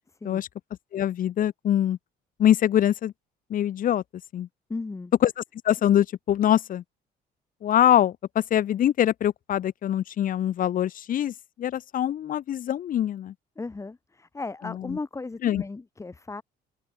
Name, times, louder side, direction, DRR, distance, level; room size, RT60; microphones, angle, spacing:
voice 1, 0.9-2.0 2.4-3.1 3.5-4.0 4.3-4.5 5.2-5.3 5.6-6.8 7.6-13.3 14.7-15.0 15.4-15.6, left 11 dB, 55° left, 1.5 m, -23 dB
voice 2, 4.7-5.1 13.6-16.4, left 3 dB, 15° left, 2.0 m, -36 dB
open air
cardioid pair, 110°, 17 cm